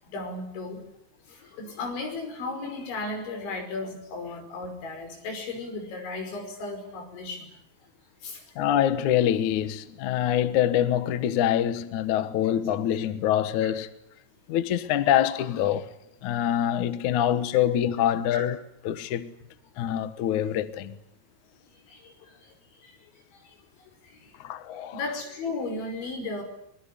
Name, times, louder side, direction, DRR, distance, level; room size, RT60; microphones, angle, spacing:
voice 1, 0.1-0.8 1.3-7.5 8.2-8.4 18.3-18.4 21.9-22.5 22.8-22.9 23.4-23.6 24.0-24.3 24.9-26.4, left 3 dB, 85° left, 7.6 m, -35 dB
voice 2, 8.6-13.9 14.5-15.9 16.2-18.6 18.8-19.3 19.8-21.0 24.4-25.0, left 11 dB, 65° left, 2.0 m, -25 dB
24.0 x 22.0 x 9.9 m
omnidirectional pair, 5.1 m